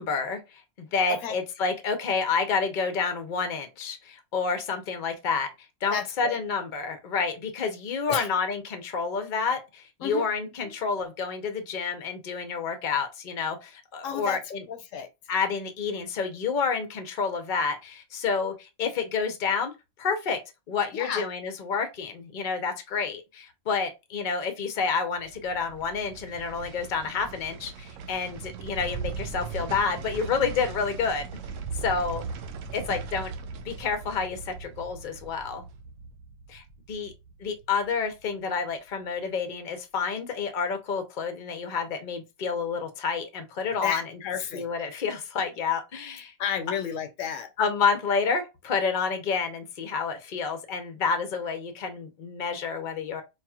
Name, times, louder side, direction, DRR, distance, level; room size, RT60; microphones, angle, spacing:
voice 1, 0.0-5.5 5.8-14.6 15.3-19.7 20.0-20.4 20.7-31.3 31.8-32.2 32.7-33.3 33.6-35.6 36.5-37.1 37.4-44.0 44.5-46.3 47.6-53.2, left 5 dB, 45° left, 0.9 m, -29 dB
voice 2, 5.9-6.4 8.1-8.3 10.0-10.3 10.6-10.7 14.0-14.4 14.7-15.1 20.9-21.2 43.8-44.7 46.4-47.5, left 7 dB, 80° left, 1.0 m, -31 dB
sound 1, 25.2-38.3 38.7-38.8, right 5 dB, 90° right, 1.0 m, -39 dB
4.8 x 2.9 x 2.3 m
omnidirectional pair, 1.3 m